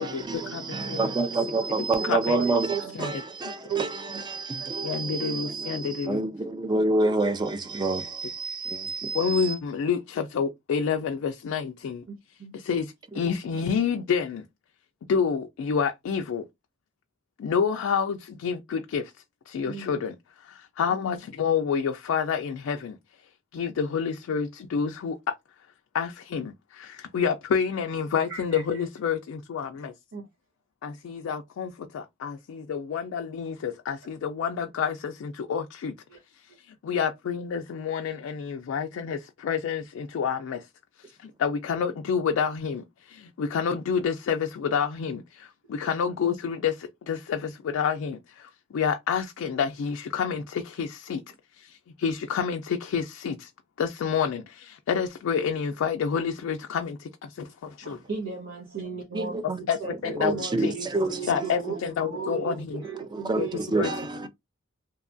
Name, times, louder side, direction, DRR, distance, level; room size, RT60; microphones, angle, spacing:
voice 1, 0.0-9.5 13.1-13.2 59.1-59.6 60.0-61.5 62.2-62.3 63.0-64.3, right 3 dB, 20° right, 0.3 m, -28 dB
voice 2, 0.5-1.0 1.8-2.4 3.0-3.1 4.8-6.2 9.1-12.0 12.5-14.4 15.1-16.5 17.4-19.1 19.5-23.0 23.5-25.4 25.9-29.9 30.8-35.9 36.6-40.7 41.0-51.2 52.0-53.5 53.8-58.0 59.7-59.8 60.0-60.7 61.3-62.8 63.4-63.5 63.8-63.9, left 6 dB, 80° left, 0.3 m, -29 dB
voice 3, 2.0-3.2 3.6-3.9 4.1-4.3 4.6-4.7 5.1-5.2 12.4-12.6 19.6-20.0 28.3-28.8 30.1-30.3 36.1-36.2 57.8-60.0 60.3-61.8 62.1-64.3, right 6 dB, 75° right, 0.8 m, -36 dB
2.7 x 2.3 x 2.5 m
head